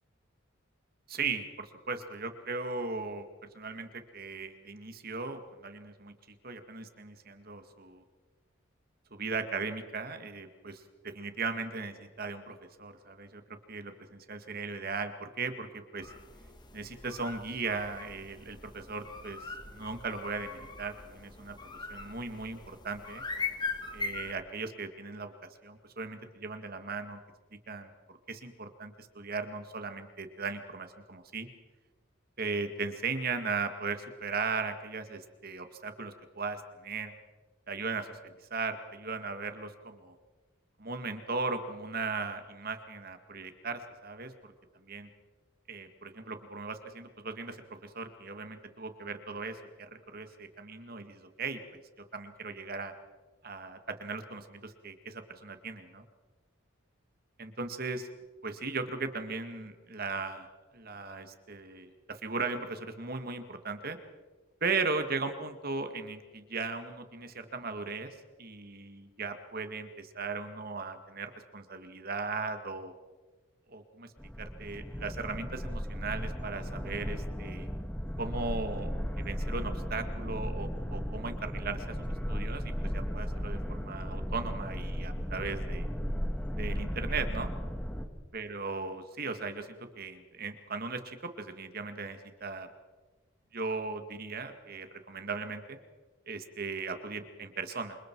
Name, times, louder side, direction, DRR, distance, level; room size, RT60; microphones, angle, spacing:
voice 1, 1.1-3.3 3.5-6.1 6.4-8.0 9.1-13.4 13.7-16.1 16.7-23.2 23.9-25.3 25.6-27.2 27.7-31.5 32.4-37.1 37.7-40.1 40.8-44.5 44.8-45.1 45.7-51.8 52.1-52.9 53.4-56.0 57.4-58.1 58.4-64.0 64.6-72.9 73.7-74.1 74.4-77.7 78.2-78.9 79.2-82.0 82.3-85.9 86.5-87.5 88.3-92.7 93.5-95.8 96.3-98.0, right 4 dB, 50° right, 7 dB, 2.0 m, -37 dB
sound 1, 16.0-24.3, left 4 dB, 20° left, 1.8 m, -41 dB
sound 2, 74.2-88.1, equal, 5° left, 1.7 m, -35 dB
27.5 x 26.0 x 4.7 m, 1.3 s
head